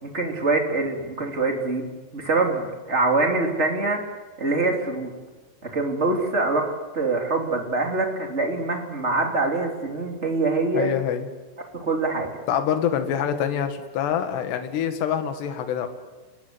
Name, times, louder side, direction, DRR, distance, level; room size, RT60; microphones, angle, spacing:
voice 1, 0.0-4.0 4.4-5.1 5.6-10.9 11.7-12.3, right 3 dB, 15° right, 2 dB, 3.0 m, -24 dB
voice 2, 10.7-11.3 12.5-15.9, left 9 dB, 70° left, 7 dB, 3.9 m, -25 dB
30.0 x 20.0 x 8.2 m, 1.2 s
omnidirectional pair, 5.3 m